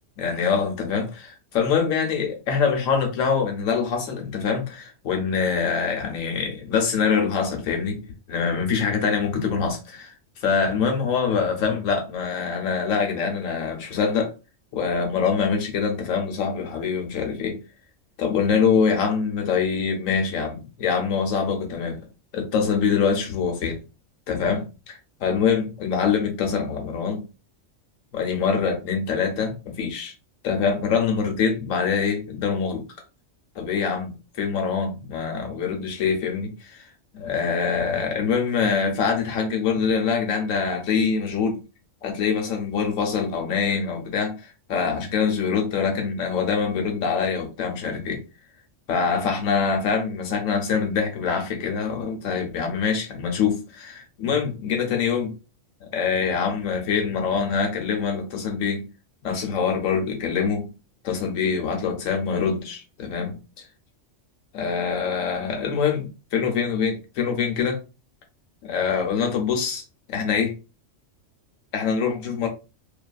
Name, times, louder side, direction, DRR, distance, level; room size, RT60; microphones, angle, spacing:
voice 1, 0.2-8.0 8.3-10.1 10.4-14.3 14.7-17.6 18.2-22.0 22.3-23.8 24.3-27.2 28.1-30.1 30.4-32.8 33.6-41.6 42.0-48.2 48.9-55.3 55.8-58.8 59.2-60.7 61.0-63.6 64.5-67.8 68.7-69.8 70.1-70.5 71.7-72.5, left 6 dB, 90° left, 1.1 m, -24 dB
2.6 x 2.5 x 2.3 m
omnidirectional pair, 1.3 m